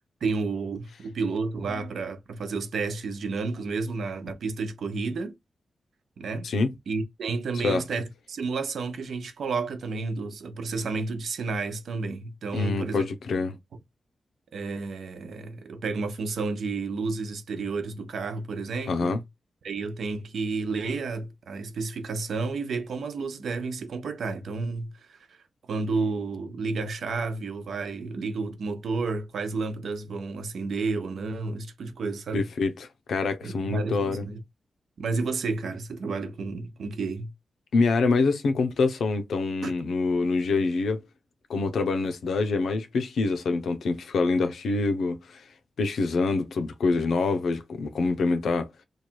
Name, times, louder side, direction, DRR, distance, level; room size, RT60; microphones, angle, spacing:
voice 1, 0.2-5.4 6.2-6.5 6.9-13.1 14.5-19.2 19.6-25.4 25.7-32.4 33.4-34.4 35.0-37.3 39.6-39.7, right 4 dB, 70° right, 0.8 m, -31 dB
voice 2, 12.5-13.6 18.9-19.2 32.3-34.2 37.7-41.0 41.5-45.4 45.8-48.7, left 3 dB, 80° left, 0.7 m, -25 dB
3.1 x 2.4 x 4.4 m
wide cardioid pair, 175°, 0 cm